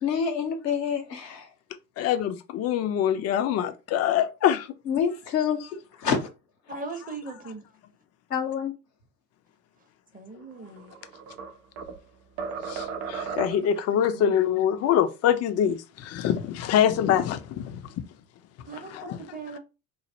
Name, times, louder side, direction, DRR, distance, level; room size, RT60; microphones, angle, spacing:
voice 1, 0.0-1.5 4.9-5.6 6.0-6.3 8.3-8.7, left 7 dB, 90° left, 0.7 m, -27 dB
voice 2, 2.0-4.7 12.7-17.8 18.7-19.2, left 9 dB, 35° left, 0.4 m, -25 dB
voice 3, 6.7-7.6 10.1-10.9 14.0-14.2 18.7-19.6, right 3 dB, 20° right, 0.7 m, -39 dB
sound 1, 10.7-12.0 12.4-13.8, right 6 dB, 75° right, 0.6 m, -35 dB
3.2 x 2.0 x 2.7 m
figure-of-eight pair, 60°, 47 cm